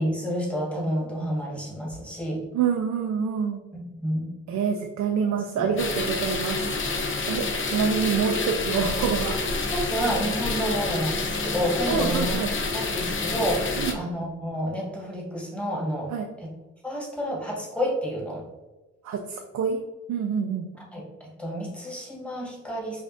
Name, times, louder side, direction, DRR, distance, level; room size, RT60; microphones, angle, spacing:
voice 1, 0.0-2.4 3.7-4.3 5.6-5.7 9.6-12.4 12.7-13.7 13.9-16.1 16.4-16.5 16.8-18.4 20.9-23.0, equal, 5° left, -3 dB, 1.4 m, -29 dB
voice 2, 2.5-3.6 4.5-6.6 7.3-9.4 11.9-12.5 13.8-13.9 16.1-16.3 19.0-19.8 20.1-20.7, right 6 dB, 65° right, 2 dB, 0.5 m, -26 dB
sound 1, 5.8-13.9, left 3 dB, 40° left, 0.7 m, -28 dB
5.4 x 2.5 x 2.5 m, 1.1 s
cardioid pair, 90°, 30 cm